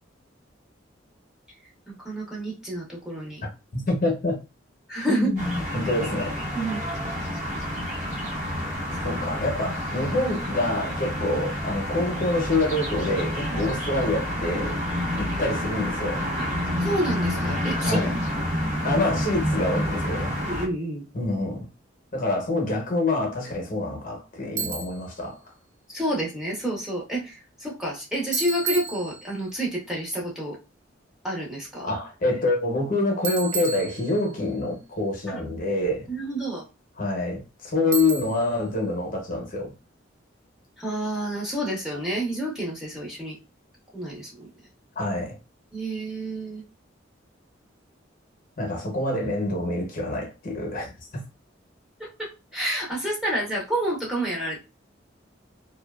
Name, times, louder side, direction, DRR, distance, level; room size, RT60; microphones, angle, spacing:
voice 1, 2.0-3.4 4.9-5.3 6.6-6.8 9.1-9.2 16.8-18.1 20.5-21.0 25.9-30.6 31.2-31.9 35.3-35.5 36.1-36.6 40.8-43.4 43.9-44.5 45.7-46.6 52.0-54.6, right 1 dB, ahead, 0.7 m, -29 dB
voice 2, 3.7-4.4 5.1-6.4 9.0-14.8 15.2-16.3 17.8-18.1 18.8-20.5 21.1-21.7 22.1-25.4 31.8-36.1 37.0-39.7 45.0-45.4 48.6-51.2, left 2 dB, 45° left, 0.7 m, -26 dB
sound 1, 5.4-20.7, equal, 40° right, 0.8 m, -29 dB
Bicycle, 24.6-25.1 28.3-29.5 33.2-34.5 37.9-38.6, right 5 dB, 80° right, 0.5 m, -32 dB
2.6 x 2.2 x 2.3 m
head